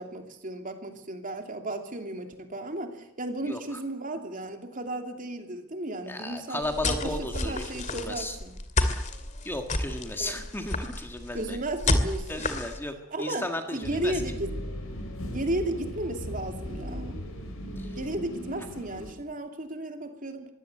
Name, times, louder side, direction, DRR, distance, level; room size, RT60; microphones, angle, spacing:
voice 1, 0.0-8.5 10.2-10.4 11.3-12.4 13.1-14.5 15.3-17.2 18.0-20.5, right 1 dB, 40° right, 5 dB, 2.8 m, -34 dB
voice 2, 3.4-3.8 6.1-8.3 9.4-11.6 12.3-14.2 17.8-17.9, left 1 dB, 10° left, 5 dB, 1.7 m, -35 dB
sound 1, 6.6-12.8, left 2 dB, 35° left, 2.4 m, -30 dB
sound 2, 13.8-19.1, equal, 70° left, 5.3 m, -37 dB
22.5 x 16.5 x 7.8 m, 0.89 s
head